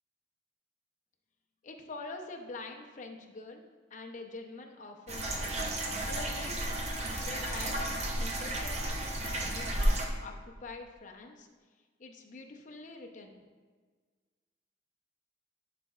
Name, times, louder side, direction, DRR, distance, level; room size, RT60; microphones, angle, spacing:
voice 1, 1.6-3.6 3.9-5.6 6.0-6.8 7.2-7.9 8.2-9.1 9.5-9.9 10.2-11.5 12.0-13.4, left 3 dB, 40° left, 2 dB, 0.6 m, -45 dB
sound 1, 5.1-10.1, right 1 dB, 35° right, 0.7 m, -32 dB
10.5 x 4.2 x 2.3 m, 1.5 s
head